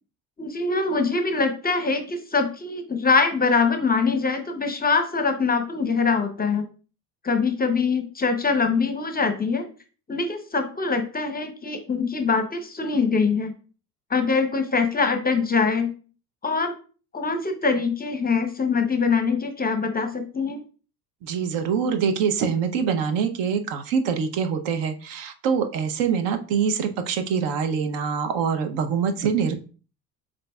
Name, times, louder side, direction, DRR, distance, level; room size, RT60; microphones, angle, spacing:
voice 1, 0.4-6.6 7.2-9.7 10.1-13.5 14.1-15.9 16.4-16.7 17.1-20.6, left 4 dB, 20° left, 7 dB, 0.6 m, -23 dB
voice 2, 21.2-29.6, right 6 dB, 60° right, 8 dB, 0.7 m, -24 dB
7.4 x 2.6 x 2.3 m, 0.38 s
hypercardioid pair, 70°, 48 cm